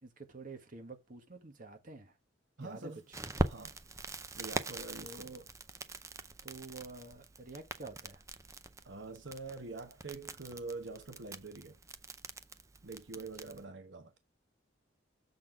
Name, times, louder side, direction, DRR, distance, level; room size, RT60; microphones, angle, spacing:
voice 1, 0.0-2.2 2.6-3.2 5.0-5.4 6.2-8.2 13.1-13.6, right 3 dB, 45° right, 1.4 m, -49 dB
voice 2, 2.6-3.0 3.5-3.7 4.4-5.3 8.8-11.8 12.8-14.1, right 3 dB, 70° right, 1.1 m, -45 dB
Crackle, 3.1-13.6, right 2 dB, 15° right, 0.5 m, -42 dB
7.3 x 4.0 x 5.9 m
head